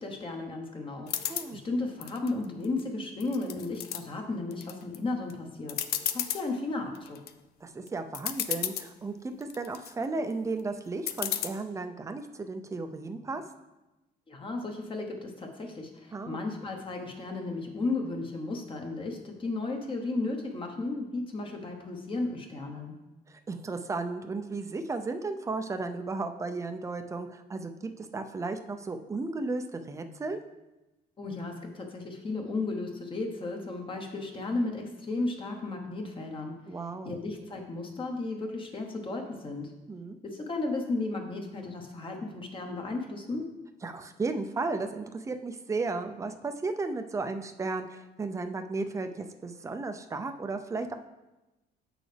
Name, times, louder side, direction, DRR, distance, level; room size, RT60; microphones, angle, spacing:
voice 1, 0.0-5.8 6.1-7.2 14.3-22.9 31.2-36.6 37.0-39.7 40.2-43.5, left 3 dB, 30° left, 2 dB, 1.0 m, -34 dB
sound 1, 1.1-1.5 2.0-2.8 3.2-4.0 4.5-5.0 5.3-5.4 5.7-6.4 7.0-7.3 7.9-8.0 8.1-8.9 9.4-9.9 11.1-11.5, left 11 dB, 70° left, 0.5 m, -32 dB
voice 2, 1.3-1.6 7.6-13.4 16.1-16.4 23.3-27.7 28.0-30.4 36.7-37.2 39.9-40.2 43.8-50.9, right 3 dB, 20° right, 7 dB, 0.5 m, -34 dB
7.7 x 6.3 x 3.3 m, 1.0 s
cardioid pair, 110°, 17 cm